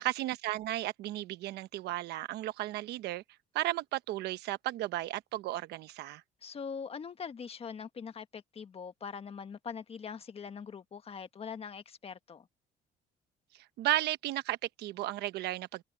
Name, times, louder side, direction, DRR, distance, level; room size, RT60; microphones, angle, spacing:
voice 1, 0.0-3.2 3.5-6.2 13.8-15.8, right 15 dB, 80° right, 1.0 m, -34 dB
voice 2, 6.4-12.5, left 6 dB, 35° left, 1.5 m, -42 dB
cardioid pair, 110°, 17 cm